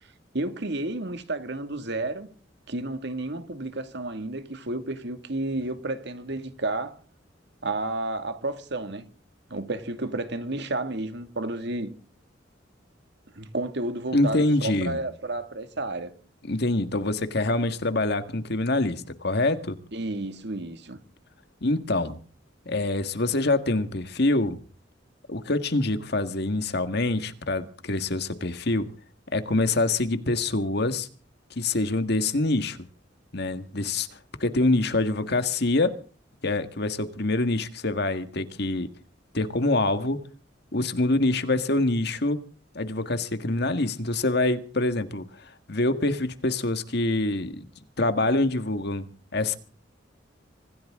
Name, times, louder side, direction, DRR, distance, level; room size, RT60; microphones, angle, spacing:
voice 1, 0.3-2.3 2.7-6.9 7.6-9.1 9.5-11.9 13.4-16.1 19.9-21.0, right 2 dB, 65° right, 2.2 m, -31 dB
voice 2, 14.1-15.0 16.5-19.8 21.6-22.2 22.7-24.6 25.3-28.9 29.3-31.1 31.6-32.8 33.3-34.1 34.4-36.0 36.4-38.9 39.3-40.2 40.7-42.4 42.8-45.3 45.7-47.7 48.0-49.1 49.3-49.6, left 2 dB, 60° left, 1.8 m, -25 dB
25.5 x 15.0 x 3.7 m
head